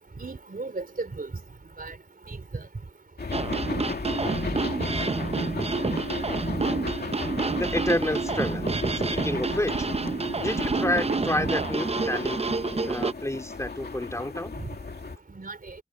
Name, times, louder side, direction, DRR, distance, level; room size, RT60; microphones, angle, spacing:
voice 1, 0.2-1.3 1.8-2.0 2.3-2.6 15.4-15.8, right 3 dB, 60° right, 4.0 m, -36 dB
sound 1, 3.2-15.2, left 4 dB, 75° left, 2.5 m, -35 dB
sound 2, 3.3-13.1, right 3 dB, 40° right, 0.7 m, -28 dB
voice 2, 7.6-8.6 9.1-9.9 10.4-12.4 12.9-14.5, left 1 dB, 20° left, 3.1 m, -29 dB
wide cardioid pair, 75°, 17 cm